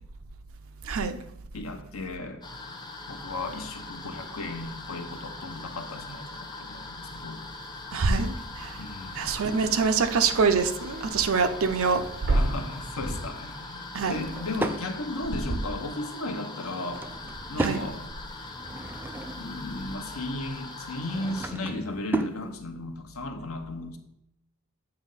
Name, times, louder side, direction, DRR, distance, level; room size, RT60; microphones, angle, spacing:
voice 1, 0.8-1.2 7.9-8.8 9.2-12.0 13.9-14.3 17.6-17.9, right 5 dB, 70° right, 8 dB, 0.6 m, -25 dB
voice 2, 1.5-2.4 3.1-7.4 8.7-9.2 12.3-17.0 17.5-18.1 19.4-24.0, left 2 dB, 80° left, 6 dB, 0.9 m, -35 dB
sound 1, 2.4-21.5, left 3 dB, 20° left, 0.8 m, -41 dB
sound 2, 9.8-14.0 14.3-14.9, equal, 50° right, 2.0 m, -41 dB
Drawer open or close / Wood, 13.9-14.9 16.6-17.9 18.4-19.6 20.9-22.4, right 2 dB, 10° right, 0.3 m, -34 dB
7.9 x 3.2 x 5.5 m, 0.78 s
head